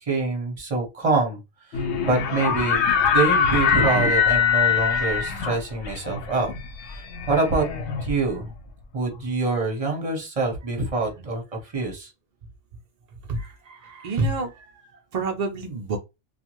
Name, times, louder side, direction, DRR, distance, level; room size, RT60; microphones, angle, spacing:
voice 1, 0.0-1.4 1.7-2.8 3.1-6.5 7.3-7.6 8.0-8.5 8.9-12.1, right 3 dB, 35° right, 0.9 m, -25 dB
sound 1, 1.7-8.6, left 6 dB, 70° left, 0.9 m, -23 dB
voice 2, 13.3-14.8 15.1-16.0, right 3 dB, 70° right, 0.4 m, -28 dB
2.5 x 2.4 x 2.9 m
omnidirectional pair, 1.2 m